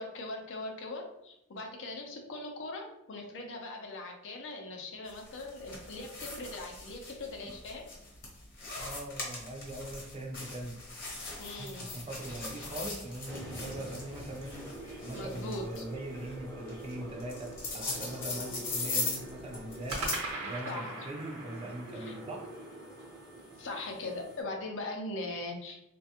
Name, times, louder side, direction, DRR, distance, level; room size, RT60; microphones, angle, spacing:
voice 1, 0.0-7.8 11.4-11.9 15.1-15.9 20.7-21.1 21.9-22.1 23.6-25.8, left 2 dB, 60° left, 2 dB, 0.5 m, -40 dB
sound 1, 5.1-20.3, left 3 dB, 40° left, 0.9 m, -40 dB
voice 2, 8.8-10.8 11.6-14.7 15.0-22.5, right 1 dB, 25° right, 1 dB, 0.4 m, -41 dB
sound 2, 12.2-14.1 19.9-24.2, right 3 dB, 85° right, 0.8 m, -43 dB
sound 3, 13.3-24.4, right 1 dB, 15° left, 0.7 m, -46 dB
3.1 x 2.2 x 2.8 m, 0.85 s
head